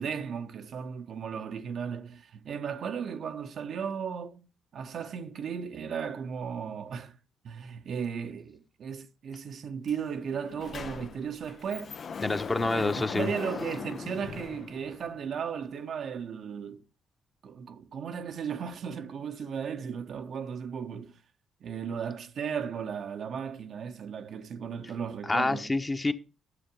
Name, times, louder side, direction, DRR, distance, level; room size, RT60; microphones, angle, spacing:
voice 1, 0.0-4.5 4.7-7.2 7.4-12.0 12.7-16.8 17.4-21.1 21.6-25.7, right 7 dB, 55° right, 0.8 m, -36 dB
Sliding door, 9.9-10.0 10.3-15.3, left 6 dB, 45° left, 0.5 m, -40 dB
voice 2, 12.2-13.3 25.3-26.1, left 2 dB, 25° left, 1.1 m, -27 dB
13.0 x 7.4 x 5.0 m
figure-of-eight pair, 40°, 0 cm